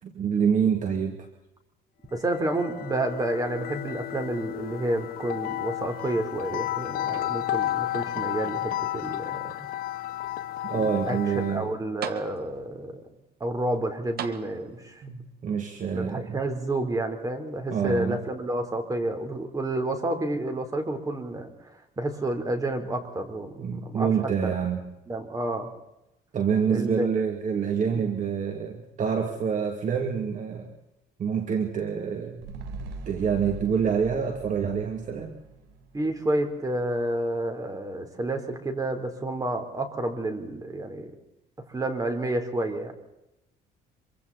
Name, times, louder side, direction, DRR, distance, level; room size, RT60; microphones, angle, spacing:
voice 1, 0.0-1.3 10.7-11.6 15.0-16.4 17.7-18.2 23.6-24.9 26.3-30.7 31.2-32.4 33.1-35.3, right 7 dB, 50° right, 4 dB, 2.6 m, -27 dB
voice 2, 2.1-9.7 10.7-13.0 13.4-15.0 15.9-21.7 22.0-24.6 25.1-25.7 26.7-27.1 27.9-28.1 35.9-41.1 41.7-42.9, right 1 dB, 20° right, 6 dB, 3.8 m, -30 dB
sound 1, 2.2-11.7, left 14 dB, 60° left, 0.6 m, -32 dB
sound 2, 7.1-7.8 8.2-9.2 9.9-10.0 11.5-11.6 12.0-12.8 14.2-15.0 16.1-16.2, right 9 dB, 65° right, 1.7 m, -40 dB
sound 3, 32.4-36.9 37.2-37.3, right 3 dB, 90° right, 2.2 m, -42 dB
26.0 x 24.5 x 4.2 m, 0.89 s
cardioid pair, 110°, 17 cm